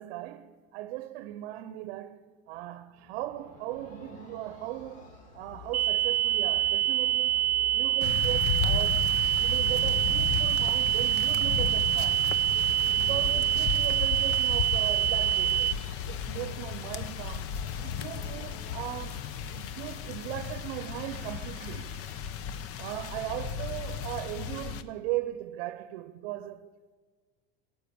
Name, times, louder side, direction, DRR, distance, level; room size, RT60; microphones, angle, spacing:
voice 1, 0.0-9.1 9.4-12.4 12.9-15.8 16.1-17.5 17.8-22.3 22.8-26.7, right 14 dB, 65° right, 0.8 m, -38 dB
sound 1, 2.9-19.9, left 4 dB, 65° left, 4.7 m, -48 dB
sound 2, 5.7-15.7, right 12 dB, 30° right, 0.8 m, -26 dB
sound 3, 8.0-24.8, left 7 dB, 45° left, 0.9 m, -34 dB
15.5 x 8.4 x 8.6 m
supercardioid pair, 110°, 31 cm